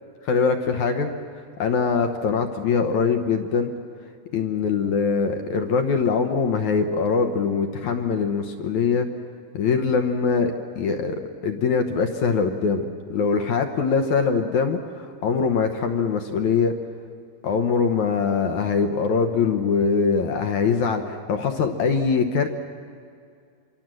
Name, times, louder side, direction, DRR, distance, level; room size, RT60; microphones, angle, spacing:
voice 1, 0.3-1.1 1.6-3.7 4.3-9.1 9.5-11.2 11.4-12.8 13.1-16.7 17.4-22.5, left 5 dB, 65° left, 6 dB, 2.0 m, -22 dB
27.5 x 24.5 x 7.7 m, 2.3 s
omnidirectional pair, 4.5 m